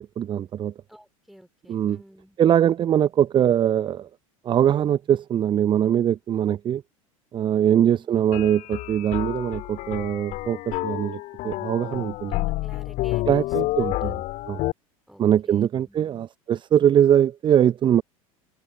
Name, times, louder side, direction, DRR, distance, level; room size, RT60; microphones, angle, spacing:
voice 1, 0.0-0.7 1.7-2.0 2.4-4.1 4.4-6.8 7.3-12.4 13.3-14.1 14.5-14.6 15.2-18.0, right 10 dB, 25° right, 0.7 m, -22 dB
voice 2, 0.9-2.4 7.7-8.1 12.3-13.5 13.7-14.1 15.1-16.3, equal, ahead, 3.4 m, -50 dB
sound 1, 8.3-14.7, left 19 dB, 45° left, 2.9 m, -29 dB
figure-of-eight pair, 75°, 18 cm